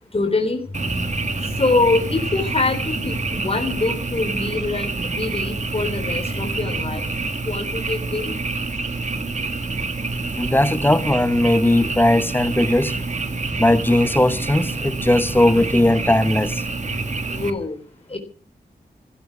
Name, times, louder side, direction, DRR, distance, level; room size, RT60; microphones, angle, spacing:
voice 1, 0.1-0.6 1.4-7.1 7.4-8.4 17.3-17.8 18.1-18.2, left 3 dB, 35° left, 3.8 m, -24 dB
Frog, 0.7-17.5, right 3 dB, 45° right, 1.7 m, -27 dB
voice 2, 10.4-12.9 13.6-16.6, left 1 dB, 10° left, 1.2 m, -18 dB
15.0 x 13.5 x 6.2 m
wide cardioid pair, 90°, 17 cm